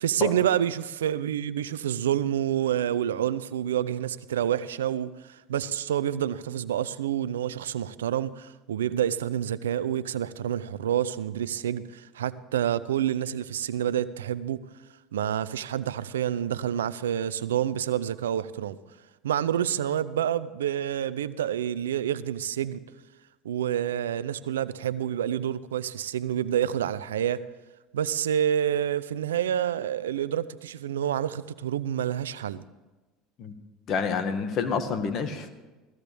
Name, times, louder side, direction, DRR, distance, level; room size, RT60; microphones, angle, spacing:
voice 1, 0.0-14.6 15.1-18.8 19.2-22.8 23.4-27.4 27.9-32.6, right 10 dB, 90° right, 0.5 m, -28 dB
voice 2, 33.9-35.5, left 6 dB, 50° left, 1.7 m, -28 dB
17.5 x 15.0 x 3.5 m
hypercardioid pair, 80°, 0 cm